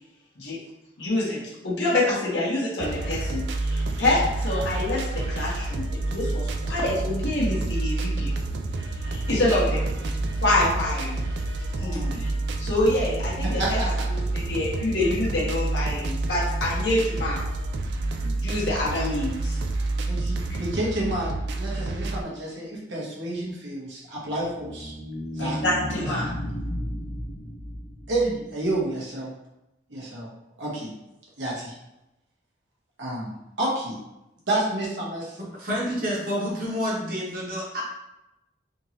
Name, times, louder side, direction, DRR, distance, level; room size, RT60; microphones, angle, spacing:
voice 1, 1.0-1.4 1.6-8.4 9.0-11.2 11.8-12.3 12.6-13.8 14.3-17.4 18.2-19.6 25.4-26.2, left 1 dB, 80° left, -6 dB, 1.0 m, -26 dB
sound 1, 2.8-22.2, right 2 dB, 70° right, 0.3 m, -28 dB
voice 2, 9.0-9.4 11.7-12.2 13.6-13.9 20.0-24.9 25.3-25.6 25.9-26.3 28.1-29.3 29.9-30.3 30.6-30.9 31.4-31.7 33.0-34.0 34.5-35.4, right 1 dB, 85° right, -5 dB, 1.2 m, -30 dB
sound 2, 24.2-28.7, left 1 dB, 50° left, 0.6 m, -34 dB
voice 3, 35.6-37.8, equal, 50° right, -4 dB, 1.0 m, -28 dB
3.6 x 2.9 x 2.8 m, 0.92 s
head